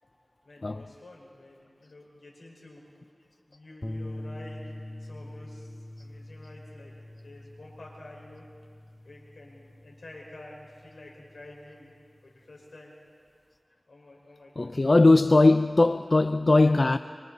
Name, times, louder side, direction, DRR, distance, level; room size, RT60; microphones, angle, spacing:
voice 1, 0.0-2.8 3.4-5.7 6.0-8.4 9.0-11.9 12.2-12.9 13.9-15.0 16.5-17.0, left 1 dB, 85° left, 5.1 m, -49 dB
sound 1, 3.8-12.2, left 1 dB, 30° left, 1.1 m, -44 dB
voice 2, 14.6-17.0, left 2 dB, 55° left, 0.4 m, -20 dB
25.0 x 25.0 x 4.2 m
wide cardioid pair, 40°, 0 cm